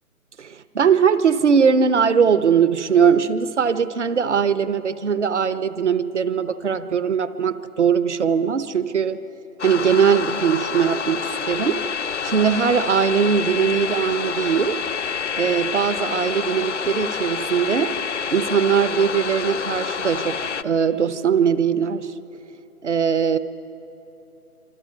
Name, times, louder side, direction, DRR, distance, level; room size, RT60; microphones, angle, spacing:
voice 1, 0.4-9.2 9.6-11.9 12.2-14.8 15.3-18.0 18.3-22.1 22.8-23.4, right 7 dB, 50° right, 13 dB, 1.0 m, -20 dB
sound 1, 9.6-20.6, left 6 dB, 50° left, 0.7 m, -28 dB
26.5 x 25.0 x 5.5 m, 2.9 s
figure-of-eight pair, 145°, 45 cm